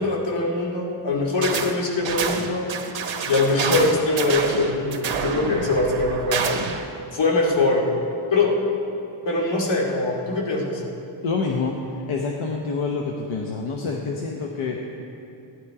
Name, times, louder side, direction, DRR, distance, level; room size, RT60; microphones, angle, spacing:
voice 1, 0.0-2.7 3.2-6.5 7.1-7.8 8.3-8.6 9.2-10.8, left 2 dB, 60° left, -2 dB, 2.5 m, -22 dB
sound 1, 1.4-1.8 2.1-6.9, right 6 dB, 65° right, 1.1 m, -28 dB
voice 2, 11.2-11.8 12.1-14.8, left 4 dB, 75° left, 1 dB, 1.1 m, -27 dB
15.5 x 10.5 x 4.9 m, 2.8 s
wide cardioid pair, 115°, 50 cm